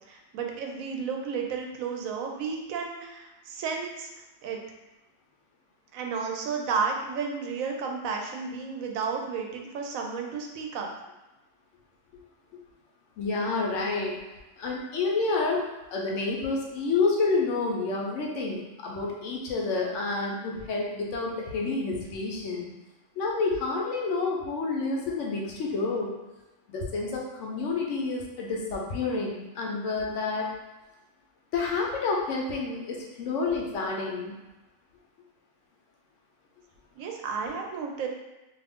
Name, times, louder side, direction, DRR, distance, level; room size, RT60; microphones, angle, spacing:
voice 1, 0.1-4.1 4.4-4.6 5.9-10.9 36.9-38.1, right 5 dB, 85° right, 1 dB, 1.0 m, -32 dB
voice 2, 13.2-14.2 14.6-22.7 23.2-26.1 26.7-30.5 31.5-34.4, left 3 dB, 70° left, -2 dB, 0.9 m, -29 dB
2.6 x 2.4 x 3.4 m, 1.1 s
omnidirectional pair, 1.4 m